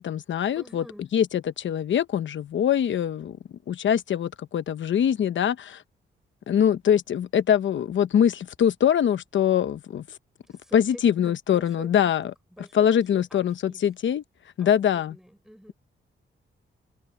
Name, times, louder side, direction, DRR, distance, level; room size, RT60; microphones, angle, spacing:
voice 1, 0.0-0.8 1.1-3.4 3.7-5.8 6.5-10.0 10.7-12.3 12.7-14.2 14.6-15.1, left 9 dB, 65° left, 0.9 m, -23 dB
voice 2, 0.5-1.1 10.4-12.1 12.5-13.8 14.6-15.7, equal, ahead, 5.6 m, -48 dB
wide cardioid pair, 140°, 21 cm